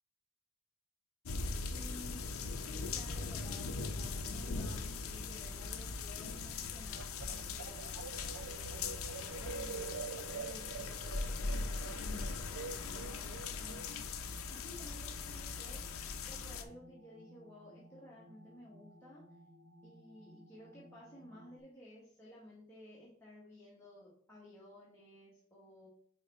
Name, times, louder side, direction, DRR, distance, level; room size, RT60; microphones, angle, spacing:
sound 1, 1.3-16.6, left 4 dB, 85° left, 0.7 m, -40 dB
voice 1, 1.7-7.9 8.4-14.0 14.5-19.2 19.8-25.9, left 1 dB, 10° left, -8 dB, 1.5 m, -55 dB
sound 2, 4.0-21.6, equal, 55° right, 0.7 m, -59 dB
sound 3, 7.0-13.9, right 6 dB, 85° right, 0.4 m, -46 dB
5.4 x 4.6 x 4.2 m, 0.62 s
head